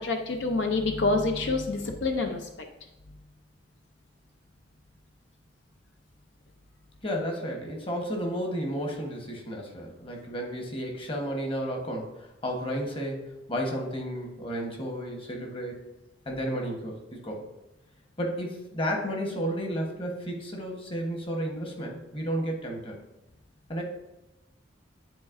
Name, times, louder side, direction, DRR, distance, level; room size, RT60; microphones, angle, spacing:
voice 1, 0.0-2.5, left 3 dB, 75° left, 4 dB, 0.6 m, -27 dB
voice 2, 7.0-15.8 16.2-17.5 18.2-23.0 23.7-23.8, equal, 30° left, 1 dB, 1.1 m, -32 dB
9.6 x 4.0 x 2.5 m, 0.95 s
head